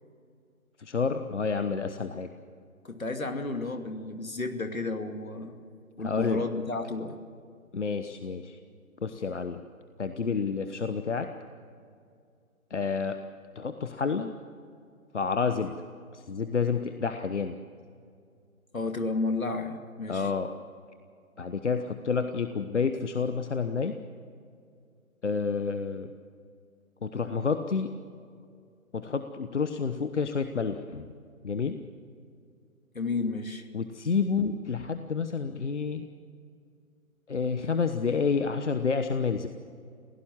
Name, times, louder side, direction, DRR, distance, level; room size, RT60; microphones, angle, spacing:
voice 1, 0.8-2.3 6.0-6.4 7.7-8.6 9.0-9.6 10.0-11.3 12.7-13.2 13.5-14.3 15.1-15.7 16.1-17.6 20.1-20.5 21.4-23.9 25.2-26.1 27.0-27.9 28.9-31.1 31.4-31.8 33.7-36.0 37.3-39.5, left 5 dB, 55° left, 8 dB, 1.2 m, -29 dB
voice 2, 2.8-5.6 6.0-7.2 18.7-20.3 32.9-33.7, left 3 dB, 70° left, 6 dB, 2.6 m, -32 dB
26.5 x 17.0 x 7.4 m, 2.3 s
figure-of-eight pair, 150°, 42 cm